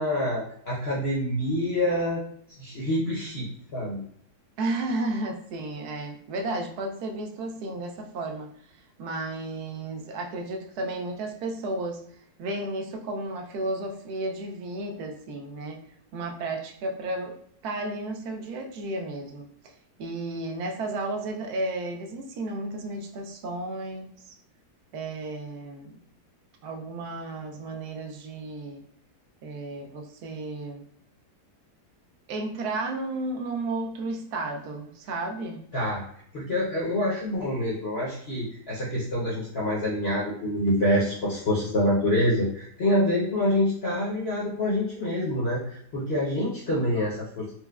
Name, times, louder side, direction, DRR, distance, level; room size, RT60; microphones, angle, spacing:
voice 1, 0.0-2.2 2.6-4.0 35.7-36.0 36.3-47.5, left 1 dB, 55° left, -6 dB, 0.7 m, -26 dB
voice 2, 4.6-8.5 9.0-12.0 12.4-15.8 16.1-19.7 20.0-24.4 24.9-26.0 26.6-28.8 29.4-30.8 32.3-35.6, right 2 dB, 75° right, 2 dB, 1.0 m, -33 dB
4.3 x 2.0 x 2.3 m, 0.66 s
omnidirectional pair, 1.8 m